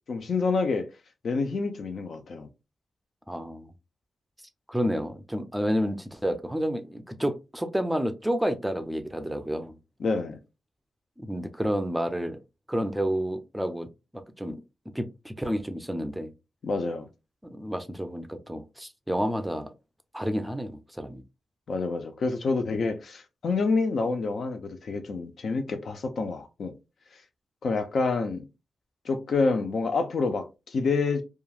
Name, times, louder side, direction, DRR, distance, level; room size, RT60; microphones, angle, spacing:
voice 1, 0.1-0.9 1.2-2.5 10.0-10.4 16.6-17.1 21.7-26.7 27.6-28.4 29.1-31.2, left 4 dB, 65° left, 0.5 m, -27 dB
voice 2, 3.3-3.7 4.7-9.8 11.2-12.4 12.7-14.6 14.9-16.3 17.5-19.7 20.1-21.2, equal, 5° right, 0.5 m, -30 dB
3.0 x 2.4 x 2.3 m
cardioid pair, 75°, 0 cm